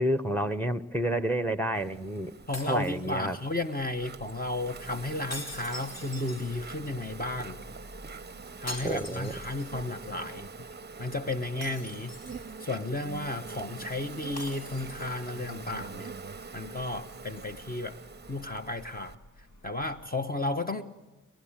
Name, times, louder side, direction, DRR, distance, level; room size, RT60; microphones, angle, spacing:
voice 1, 0.0-2.3 2.6-3.4 8.8-9.3, right 1 dB, 5° left, 13 dB, 1.1 m, -29 dB
Insect, 1.7-19.2, right 4 dB, 35° right, 0.7 m, -45 dB
sound 1, 2.5-3.6 5.3-6.9 8.7-9.9 10.2-10.3 11.6-12.7 14.4-15.3, left 1 dB, 55° left, 4.7 m, -43 dB
voice 2, 2.5-7.6 8.6-10.5 11.0-12.1 12.6-16.1 16.5-18.0 18.3-20.8, left 2 dB, 30° left, 6 dB, 1.2 m, -33 dB
sound 2, 4.0-20.1, equal, 70° left, 2.6 m, -54 dB
29.0 x 12.0 x 8.9 m, 1.1 s
cardioid pair, 45°, 31 cm